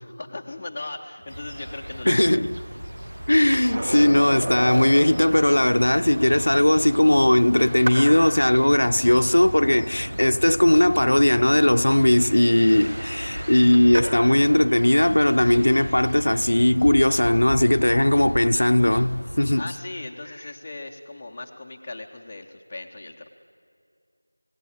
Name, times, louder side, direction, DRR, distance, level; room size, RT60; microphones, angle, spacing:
voice 1, 0.0-2.4 19.6-23.3, left 2 dB, 20° left, 0.6 m, -38 dB
sound 1, 1.2-18.4, equal, 55° right, 6.8 m, -43 dB
sound 2, 1.3-19.6, equal, 80° right, 0.8 m, -36 dB
voice 2, 2.1-2.5 3.3-19.7, left 1 dB, 60° left, 0.7 m, -18 dB
Skateboard, 3.5-14.4 17.0-17.1, right 1 dB, 35° right, 3.1 m, -35 dB
25.0 x 17.5 x 8.6 m
figure-of-eight pair, 175°, 0 cm